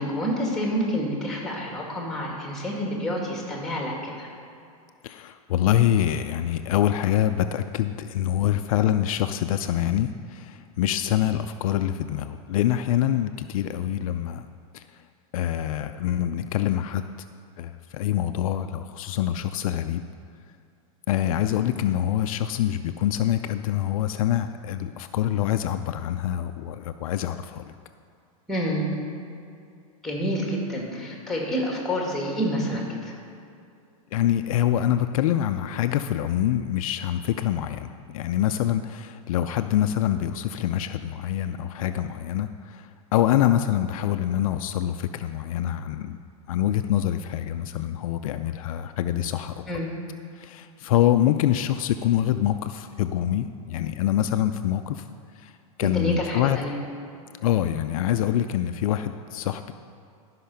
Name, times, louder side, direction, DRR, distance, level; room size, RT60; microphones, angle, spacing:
voice 1, 0.0-4.3 28.5-28.8 30.0-33.1 49.7-49.9 55.8-56.7, equal, ahead, -1 dB, 2.1 m, -28 dB
voice 2, 5.0-14.5 14.7-14.8 15.3-17.0 17.6-20.0 21.1-27.6 34.1-46.2 46.5-49.6 50.4-55.0 55.4-55.5 55.8-56.6 57.4-59.7, left 11 dB, 70° left, 9 dB, 0.5 m, -25 dB
12.0 x 5.7 x 5.6 m, 2.5 s
supercardioid pair, 135°, 19 cm